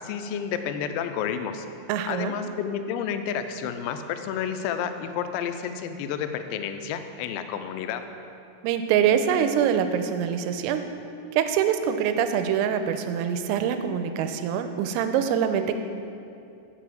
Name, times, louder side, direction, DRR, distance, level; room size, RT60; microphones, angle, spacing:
voice 1, 0.0-1.7 2.1-8.0, left 8 dB, 90° left, 8 dB, 3.3 m, -30 dB
voice 2, 1.9-2.3 8.6-10.8 11.3-15.7, right 8 dB, 85° right, 8 dB, 3.2 m, -24 dB
7.4 x 6.9 x 7.4 m, 2.6 s
omnidirectional pair, 5.9 m